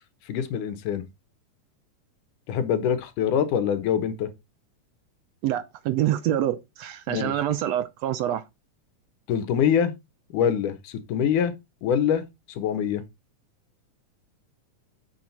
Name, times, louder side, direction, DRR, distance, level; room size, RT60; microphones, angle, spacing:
voice 1, 0.3-1.1 2.5-4.3 7.1-7.3 9.3-9.9 10.3-11.5 11.8-12.2 12.6-13.0, left 8 dB, 90° left, 2.7 m, -24 dB
voice 2, 5.4-8.4, right 12 dB, 75° right, 1.7 m, -26 dB
7.6 x 7.4 x 4.1 m
omnidirectional pair, 3.5 m